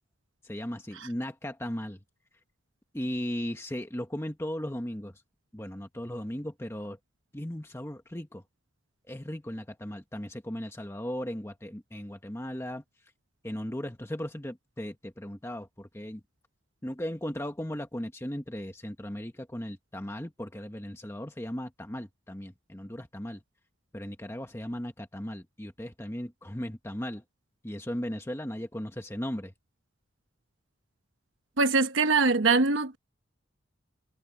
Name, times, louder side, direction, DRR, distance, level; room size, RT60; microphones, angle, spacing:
voice 1, 0.4-2.0 2.9-5.1 5.5-7.0 7.3-8.4 9.1-12.8 13.4-16.2 16.8-23.4 23.9-27.2 27.6-29.5, equal, 15° left, 1.2 m, -37 dB
voice 2, 31.6-33.0, right 4 dB, 80° right, 1.0 m, -23 dB
head